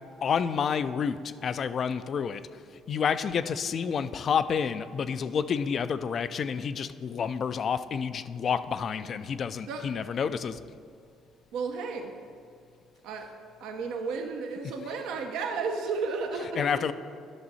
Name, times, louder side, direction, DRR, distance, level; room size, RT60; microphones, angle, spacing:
voice 1, 0.2-2.6 2.9-10.6 16.6-16.9, left 6 dB, 50° left, 13 dB, 0.4 m, -29 dB
voice 2, 11.5-12.1 13.0-13.3 13.6-16.9, right 4 dB, 75° right, 4 dB, 0.7 m, -33 dB
11.0 x 6.1 x 4.1 m, 2.2 s
supercardioid pair, 65°, 0 cm